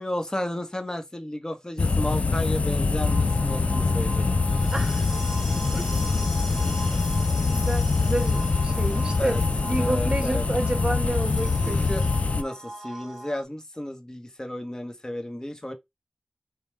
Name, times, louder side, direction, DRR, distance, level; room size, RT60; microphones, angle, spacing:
voice 1, 0.0-4.5 9.2-9.4 9.8-10.5 11.6-12.0 12.4-15.7, left 1 dB, 30° left, 1.0 m, -33 dB
sound 1, 1.8-12.4, left 3 dB, 80° left, 0.4 m, -24 dB
sound 2, 3.0-13.4, right 1 dB, 10° right, 2.0 m, -39 dB
voice 2, 4.7-5.1 5.7-5.8 7.4-11.8, right 1 dB, 45° right, 1.2 m, -30 dB
5.3 x 2.3 x 3.2 m
wide cardioid pair, 50°, 2 cm